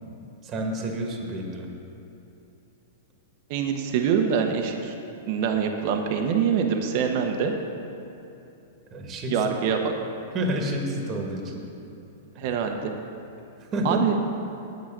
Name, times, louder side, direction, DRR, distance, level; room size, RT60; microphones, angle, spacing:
voice 1, 0.4-1.7 8.9-9.3 10.3-11.6 12.4-12.5 13.7-14.0, equal, 30° right, 2 dB, 1.5 m, -29 dB
voice 2, 3.5-4.9 5.3-7.5 9.3-9.9 12.4-12.9 13.8-14.2, right 7 dB, 55° right, 4 dB, 0.9 m, -24 dB
8.2 x 6.6 x 7.3 m, 2.9 s
hypercardioid pair, 110°, 0 cm